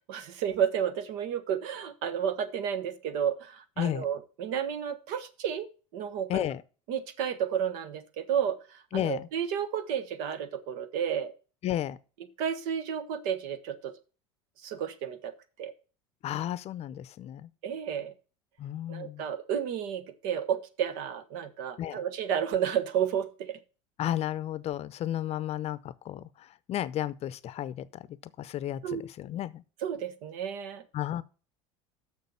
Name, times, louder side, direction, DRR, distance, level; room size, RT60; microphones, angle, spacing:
voice 1, 0.1-5.7 5.9-6.5 6.9-11.3 12.4-13.9 14.6-15.7 17.6-18.1 18.9-23.6 28.8-29.0 29.8-30.8, right 8 dB, 65° right, 1.2 m, -32 dB
voice 2, 6.3-6.6 8.9-9.3 11.6-12.0 16.2-17.5 18.6-19.2 21.8-22.0 24.0-28.1 28.4-29.6 30.9-31.2, left 12 dB, 45° left, 0.6 m, -33 dB
6.6 x 6.4 x 7.0 m
hypercardioid pair, 90°, 16 cm